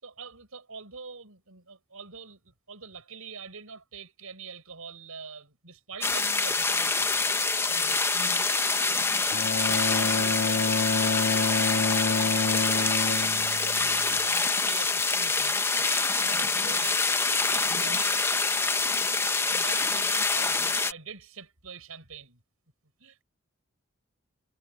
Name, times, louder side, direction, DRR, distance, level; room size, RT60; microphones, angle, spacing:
voice 1, 0.0-7.3 7.9-8.2 9.6-11.0 11.3-17.0 17.5-18.2 18.5-18.8 19.1-22.4 23.0-23.2, right 5 dB, 85° right, 5.6 m, -44 dB
sound 1, 6.0-20.9, left 3 dB, 10° left, 0.6 m, -26 dB
voice 2, 7.7-8.5 8.9-9.2 16.4-16.9 17.7-18.1, right 1 dB, 65° right, 5.2 m, -46 dB
Bowed string instrument, 9.3-14.3, left 3 dB, 65° left, 1.6 m, -28 dB
head